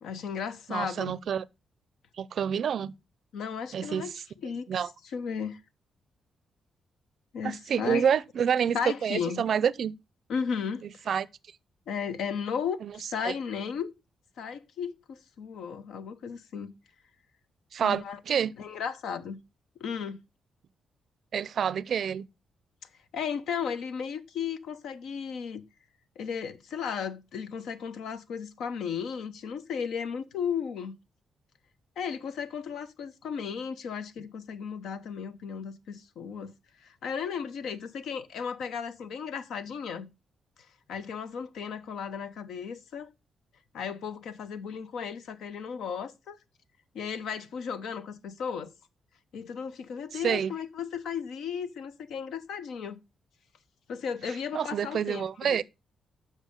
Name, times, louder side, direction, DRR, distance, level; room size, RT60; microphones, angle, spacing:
voice 1, 0.0-1.1 3.3-4.1 4.4-5.6 7.3-8.1 8.7-9.4 10.3-10.8 11.9-12.8 13.1-13.9 14.4-16.7 17.8-18.2 18.6-19.4 19.8-20.2 23.1-25.6 26.2-31.0 32.0-36.5 36.8-40.1 40.9-43.1 43.7-46.4 46.9-48.7 49.3-53.0 53.9-55.6, left 6 dB, 80° left, 0.8 m, -35 dB
voice 2, 0.7-1.4 2.2-2.9 3.7-4.1 4.7-4.9 7.4-9.9 11.1-11.3 12.8-12.9 13.2-13.3 17.7-18.5 21.3-22.3 50.2-50.5 54.2-55.6, right 8 dB, 65° right, 0.4 m, -28 dB
7.4 x 5.3 x 5.2 m
cardioid pair, 70°, 0 cm